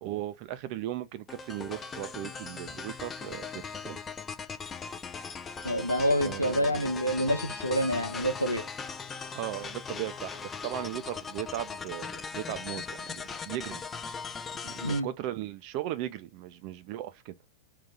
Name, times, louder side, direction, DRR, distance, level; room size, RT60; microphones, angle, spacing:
voice 1, 0.0-4.0 6.2-6.8 9.3-13.8 14.6-17.3, right 13 dB, 45° right, 0.6 m, -37 dB
sound 1, 1.3-15.0, left 5 dB, 20° left, 0.5 m, -39 dB
voice 2, 5.6-8.6 14.8-15.1, equal, 90° left, 0.9 m, -27 dB
3.9 x 2.8 x 3.5 m
figure-of-eight pair, 90°, 0 cm